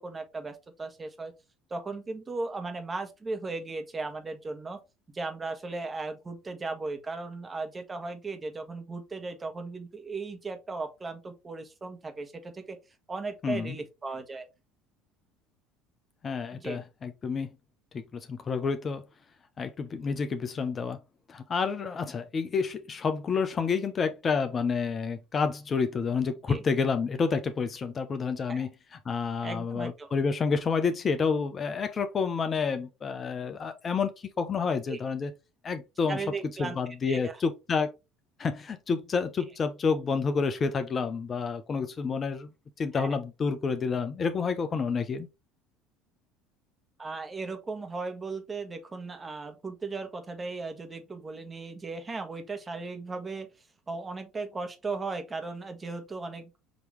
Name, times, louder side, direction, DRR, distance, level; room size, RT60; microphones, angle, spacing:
voice 1, 0.0-1.3 1.7-4.8 5.1-12.8 13.1-14.5 16.5-16.8 26.5-26.6 28.5-28.7 29.4-30.1 34.9-35.0 36.1-36.8 37.1-37.4 42.9-43.2 47.0-53.5 53.9-56.6, right 3 dB, 25° right, 1.2 m, -36 dB
voice 2, 13.4-13.8 16.2-17.5 17.9-19.0 19.6-21.0 21.3-28.7 29.0-34.1 34.4-35.3 35.6-36.2 36.6-37.9 38.4-42.5 42.8-45.3, left 5 dB, 35° left, 0.6 m, -29 dB
5.2 x 3.0 x 3.1 m
hypercardioid pair, 70°, 0 cm